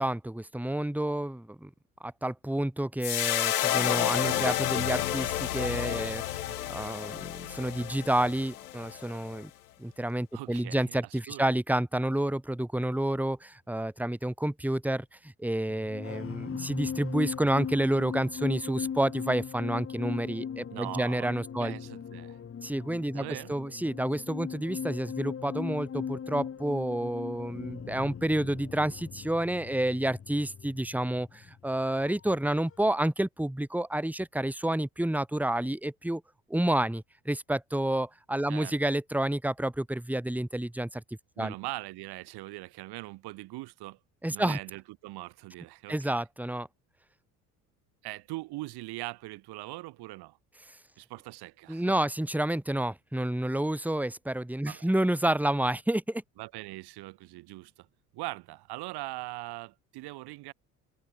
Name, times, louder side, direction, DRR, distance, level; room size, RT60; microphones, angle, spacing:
voice 1, 0.0-1.7 2.0-9.5 9.8-21.8 22.6-36.2 36.5-41.0 41.4-41.5 44.2-44.6 45.9-46.7 51.7-56.2, right 1 dB, 5° right, 2.7 m, -29 dB
sound 1, 3.0-9.4, left 13 dB, 80° left, 2.5 m, -30 dB
voice 2, 10.3-11.4 20.7-21.3 21.6-22.4 23.1-23.6 38.5-38.7 41.4-44.0 44.3-46.0 48.0-50.4 51.0-51.8 54.7-54.9 56.4-57.9 58.1-60.5, right 20 dB, 60° right, 2.7 m, -41 dB
sound 2, 15.7-32.3 32.6-32.9, left 7 dB, 30° left, 1.6 m, -39 dB
open air
figure-of-eight pair, 55°, 45 cm